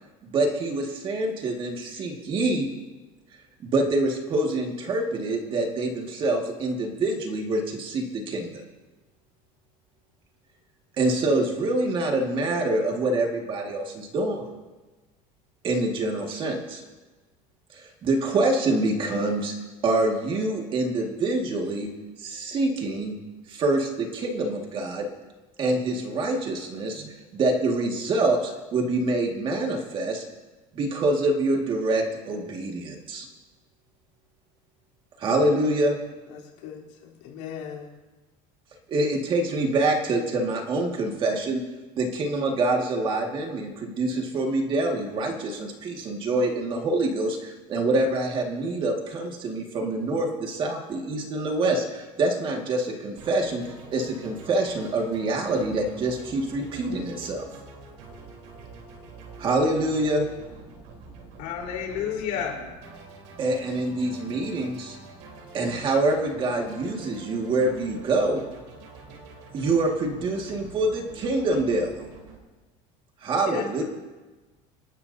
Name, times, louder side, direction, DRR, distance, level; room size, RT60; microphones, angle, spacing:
voice 1, 0.2-2.7 3.6-8.6 11.0-14.5 15.6-16.8 17.7-19.5 19.8-21.9 22.2-23.2 23.5-25.1 25.6-30.2 30.7-33.3 35.2-36.0 38.9-41.6 42.0-53.6 53.9-57.5 59.4-60.3 63.4-65.0 65.5-68.4 69.5-71.9 73.2-73.8, right 2 dB, 35° right, 2.0 m, -26 dB
voice 2, 36.3-37.9 62.0-62.7, left 8 dB, 85° left, 3.7 m, -41 dB
sound 1, 53.2-72.4, right 3 dB, 75° right, 3.9 m, -46 dB
voice 3, 61.4-62.6 73.5-73.8, left 8 dB, 65° left, 4.2 m, -31 dB
28.5 x 12.0 x 2.8 m
cardioid pair, 160°, 15 cm